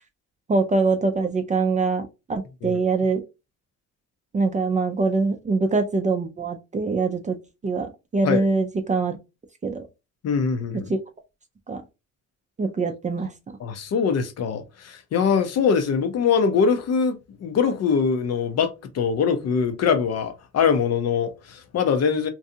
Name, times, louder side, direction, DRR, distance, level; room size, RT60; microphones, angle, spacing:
voice 1, 0.5-3.2 4.3-7.4 7.6-9.2 9.6-9.8 10.9-11.0 11.7-11.8 12.6-13.3, right 4 dB, 25° right, 0.4 m, -23 dB
voice 2, 10.2-10.9 13.6-22.3, left 6 dB, 60° left, 0.6 m, -23 dB
2.6 x 2.3 x 2.6 m
cardioid pair, 90°, 30 cm